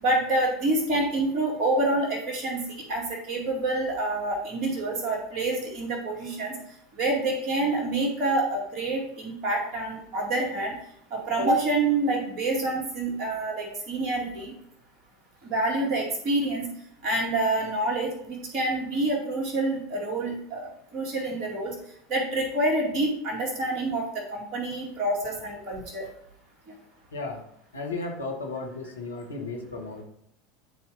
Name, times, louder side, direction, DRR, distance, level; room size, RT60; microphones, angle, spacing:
voice 1, 0.0-6.6 7.0-10.8 11.1-14.5 15.4-16.7 17.0-21.7 22.1-24.1 24.3-26.1, right 2 dB, 40° right, -1 dB, 2.1 m, -27 dB
voice 2, 27.1-27.4 27.7-30.0, left 3 dB, 80° left, 1 dB, 1.1 m, -34 dB
10.5 x 4.4 x 2.5 m, 0.73 s
figure-of-eight pair, 75°, 0 cm